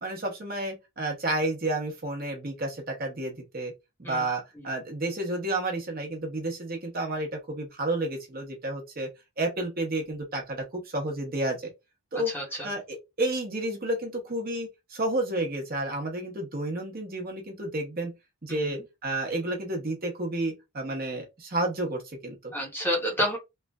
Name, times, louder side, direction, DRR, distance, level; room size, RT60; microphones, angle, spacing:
voice 1, 0.0-3.7 4.0-9.1 9.4-11.7 12.1-12.3 12.6-18.1 18.4-22.5, right 1 dB, 40° right, 0.8 m, -31 dB
voice 2, 12.3-12.7 18.5-18.6 22.5-23.4, equal, 10° left, 0.8 m, -29 dB
3.1 x 2.5 x 2.2 m
head